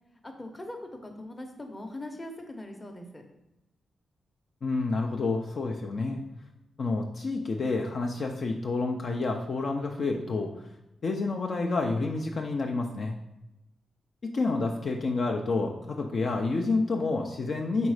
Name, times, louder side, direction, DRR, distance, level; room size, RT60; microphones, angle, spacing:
voice 1, 0.2-3.2, left 1 dB, 20° left, 3 dB, 0.8 m, -41 dB
voice 2, 4.6-6.2 6.8-10.7 11.0-13.2 14.2-17.9, left 3 dB, 50° left, 2 dB, 0.5 m, -29 dB
5.2 x 3.9 x 4.8 m, 0.91 s
wide cardioid pair, 150°, 0 cm